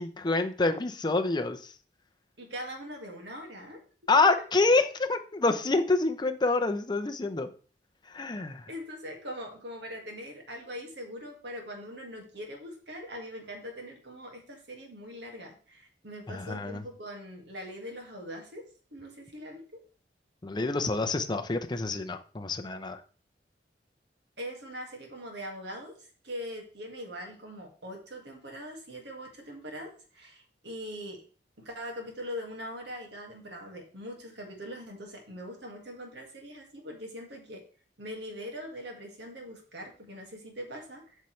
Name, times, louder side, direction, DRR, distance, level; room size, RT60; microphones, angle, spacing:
voice 1, 0.0-1.7 4.1-7.5 8.1-8.7 16.3-16.8 20.4-23.0, left 3 dB, 25° left, 6 dB, 0.6 m, -27 dB
voice 2, 2.4-3.8 4.2-4.3 8.7-19.8 24.4-25.9 26.2-31.2 31.6-37.6 38.0-41.2, equal, 70° right, 2 dB, 1.9 m, -42 dB
8.1 x 5.6 x 3.2 m, 0.40 s
head